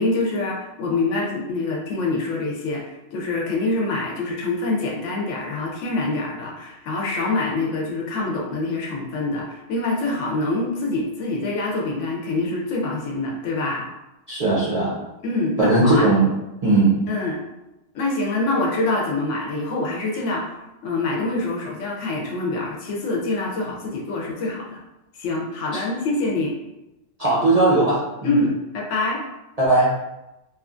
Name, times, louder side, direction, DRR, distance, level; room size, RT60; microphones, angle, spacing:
voice 1, 0.0-2.8 3.1-13.9 15.2-16.1 17.1-17.4 17.9-20.5 20.8-24.8 25.2-26.6 28.2-29.2, left 2 dB, 70° left, -1 dB, 0.9 m, -25 dB
voice 2, 14.3-15.0 15.6-16.3 16.6-17.0 25.7-25.8 27.2-28.4 29.6-29.9, right 2 dB, 45° right, -8 dB, 0.5 m, -18 dB
3.0 x 2.3 x 2.4 m, 0.95 s
omnidirectional pair, 1.4 m